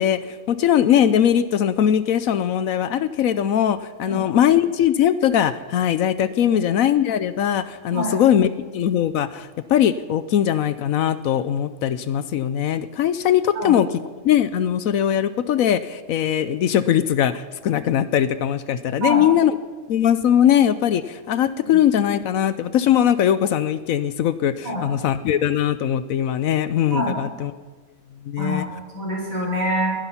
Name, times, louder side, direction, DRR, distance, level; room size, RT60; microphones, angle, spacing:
voice 1, 0.0-19.6 19.9-27.5 28.3-28.7, left 10 dB, 70° left, 14 dB, 1.0 m, -20 dB
voice 2, 28.4-28.7 28.9-29.9, equal, 65° right, -2 dB, 5.1 m, -25 dB
20.5 x 10.0 x 5.7 m, 1.3 s
omnidirectional pair, 1.6 m